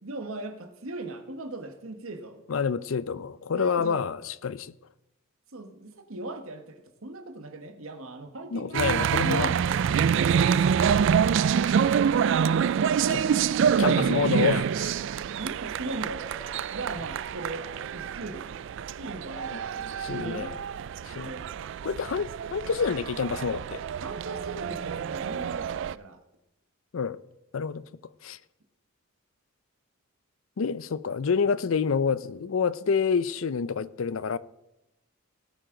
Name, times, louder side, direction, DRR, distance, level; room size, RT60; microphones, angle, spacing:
voice 1, 0.0-2.4 3.5-4.1 5.5-11.1 15.3-16.3 16.7-20.5 21.2-21.7 24.0-26.2, right 2 dB, 90° right, 1.4 m, -39 dB
voice 2, 2.5-4.7 8.5-9.5 12.7-12.8 13.1-13.3 13.8-14.9 19.8-20.5 21.1-21.3 21.8-23.8 26.9-27.2 27.5-27.8 28.2-28.4 30.6-34.4, left 6 dB, 75° left, 0.5 m, -28 dB
sound 1, 8.7-25.9, right 7 dB, 60° right, 0.3 m, -26 dB
sound 2, 16.3-16.8 17.5-18.5 19.1-20.1, equal, 10° right, 3.6 m, -51 dB
18.0 x 9.1 x 3.8 m
head